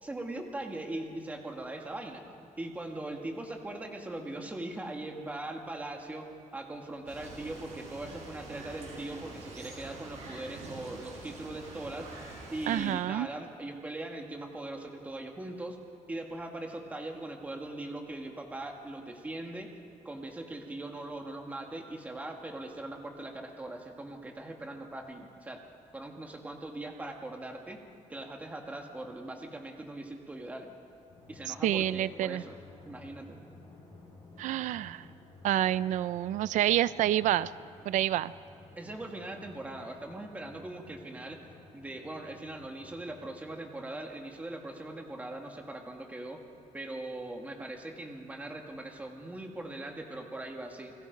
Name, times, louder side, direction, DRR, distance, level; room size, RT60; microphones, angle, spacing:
voice 1, 0.0-2.2 2.6-6.3 6.5-15.8 16.1-19.7 20.0-25.6 25.9-27.8 28.1-30.7 31.3-32.6 32.9-33.4 38.8-41.4 41.7-46.4 46.7-51.1, right 2 dB, 10° right, 2 dB, 2.0 m, -40 dB
sound 1, 7.1-12.9, right 3 dB, 55° right, 6.7 m, -46 dB
voice 2, 12.7-13.3 31.5-32.4 34.4-35.1 35.4-37.5 37.9-38.3, right 13 dB, 70° right, 17 dB, 0.5 m, -28 dB
Drum, 31.1-44.2, left 2 dB, 25° left, 7.8 m, -54 dB
30.0 x 21.5 x 5.3 m, 2.3 s
cardioid pair, 180°, 13 cm